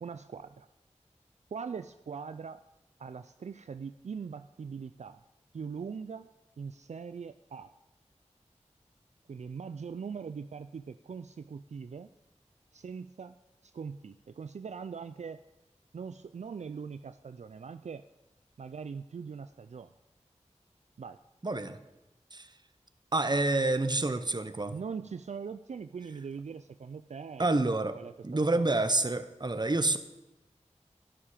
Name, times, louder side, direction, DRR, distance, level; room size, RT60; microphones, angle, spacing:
voice 1, 0.0-0.7 1.5-2.6 3.0-5.2 5.5-6.3 6.6-7.7 9.3-12.1 12.7-13.3 13.6-15.4 15.9-18.1 18.6-19.9 21.0-21.2 24.7-27.6 27.9-28.1 28.5-28.6, right 6 dB, 70° right, 11 dB, 0.4 m, -41 dB
voice 2, 21.4-21.8 22.3-22.5 23.1-24.7 27.4-28.0 28.2-30.0, right 2 dB, 35° right, 11 dB, 0.9 m, -28 dB
12.5 x 10.0 x 5.0 m, 0.99 s
wide cardioid pair, 45°, 12 cm